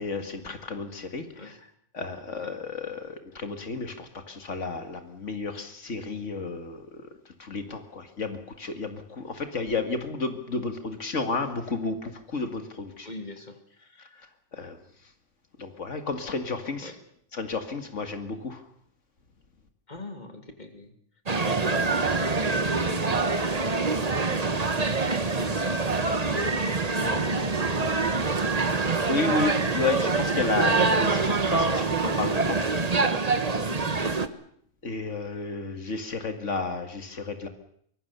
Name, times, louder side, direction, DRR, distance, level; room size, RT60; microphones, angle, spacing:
voice 1, 0.0-1.5 1.9-7.0 7.4-13.1 14.0-14.3 14.5-14.8 15.6-16.9 17.3-18.6 29.1-32.6 34.8-37.5, left 3 dB, 80° left, 7 dB, 2.3 m, -32 dB
voice 2, 13.0-13.6 16.8-17.0 19.9-20.9 21.4-22.9 25.2-28.3 33.7-33.9, left 2 dB, 35° left, 6 dB, 2.9 m, -42 dB
sound 1, 21.3-34.3, right 3 dB, 35° right, 1.3 m, -25 dB
24.5 x 22.0 x 6.8 m, 0.67 s
omnidirectional pair, 1.2 m